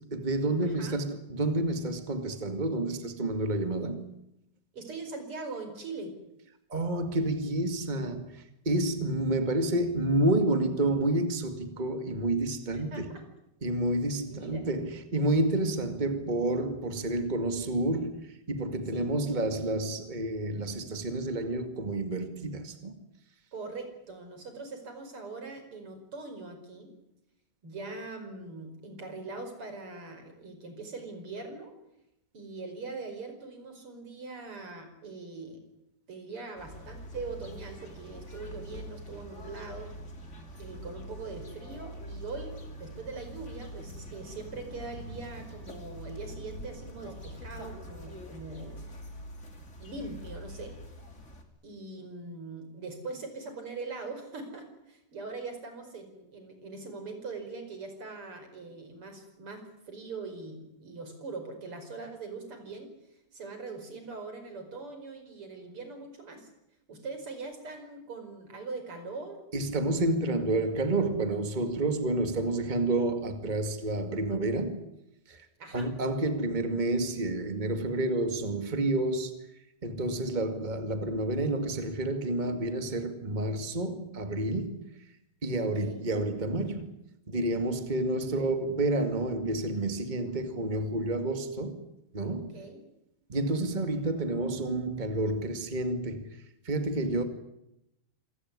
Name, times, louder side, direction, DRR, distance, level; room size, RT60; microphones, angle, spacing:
voice 1, 0.1-4.0 6.7-13.1 13.6-23.0 69.5-74.8 75.3-75.4 75.7-79.3 79.8-84.7 85.4-86.9 87.3-91.8 92.1-92.5 93.3-96.3 96.6-97.2, right 2 dB, 85° right, 0.4 m, -29 dB
voice 2, 0.6-1.0 4.7-6.1 12.7-13.2 14.3-14.7 18.9-19.1 23.5-26.9 27.6-31.7 32.3-35.6 36.1-39.9 40.6-49.0 49.8-50.8 51.6-62.9 63.3-66.5 66.9-69.4 75.6-75.9 85.6-86.0 88.3-88.5 92.5-92.8, right 3 dB, 30° right, 5.6 m, -42 dB
sound 1, 36.6-51.4, equal, 20° left, 2.2 m, -44 dB
27.0 x 17.5 x 9.8 m
omnidirectional pair, 5.0 m